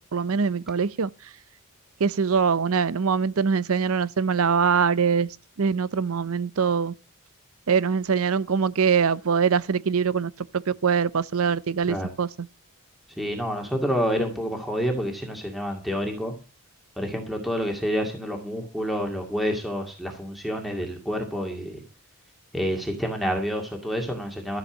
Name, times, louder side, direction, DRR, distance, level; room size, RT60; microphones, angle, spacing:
voice 1, 0.1-1.1 2.0-5.3 5.6-6.9 7.7-10.3 10.7-12.3, right 6 dB, 70° right, 0.6 m, -23 dB
voice 2, 13.2-16.3 17.0-21.8 22.5-24.6, equal, ahead, 2.3 m, -28 dB
14.0 x 7.2 x 7.3 m
head